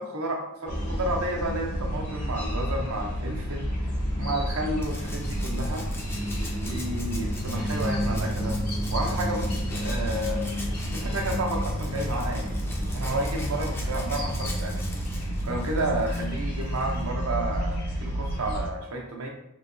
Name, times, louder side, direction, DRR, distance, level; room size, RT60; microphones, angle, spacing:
voice 1, 0.0-3.7 4.2-5.9 6.6-8.6 8.9-10.4 10.9-12.6 12.9-14.8 15.4-19.3, right 1 dB, 65° right, 2 dB, 0.6 m, -31 dB
sound 1, 0.6-16.2, right 1 dB, 70° left, 0.9 m, -41 dB
sound 2, 0.7-18.7, equal, 85° left, 1.4 m, -30 dB
Rattle (instrument), 4.8-17.1 18.5-18.6, left 2 dB, 10° left, 0.4 m, -44 dB
3.1 x 2.7 x 2.6 m, 0.78 s
head